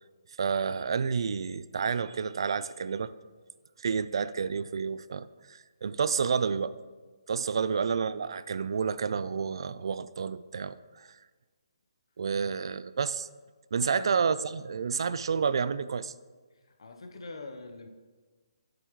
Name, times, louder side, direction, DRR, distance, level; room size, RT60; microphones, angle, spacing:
voice 1, 0.4-3.1 3.8-6.7 7.3-11.1 12.2-13.3 13.7-16.1, right 6 dB, 60° right, 16 dB, 0.3 m, -30 dB
voice 2, 13.8-14.2 16.8-17.9, left 3 dB, 75° left, 7 dB, 0.9 m, -44 dB
7.9 x 7.9 x 3.1 m, 1.4 s
hypercardioid pair, 165°, 3 cm